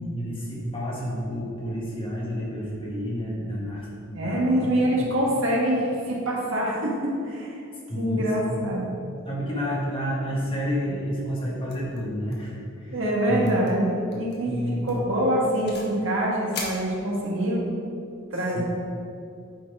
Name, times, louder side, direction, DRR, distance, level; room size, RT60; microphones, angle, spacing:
voice 1, 0.0-4.7 5.0-5.1 7.9-8.7 9.2-13.0 13.3-13.6 14.4-15.0 18.5-18.6, equal, 25° left, -5 dB, 1.6 m, -30 dB
voice 2, 4.1-7.6 7.9-8.8 12.9-14.5 14.8-17.6 18.3-18.6, right 1 dB, 70° right, -4 dB, 1.8 m, -25 dB
sound 1, 11.7-12.0 12.3-12.6 12.8-12.9 13.4-13.7 14.1-14.4 14.9-16.0 16.5-17.5, left 3 dB, 50° left, 1.3 m, -39 dB
9.1 x 4.4 x 4.9 m, 2.5 s
head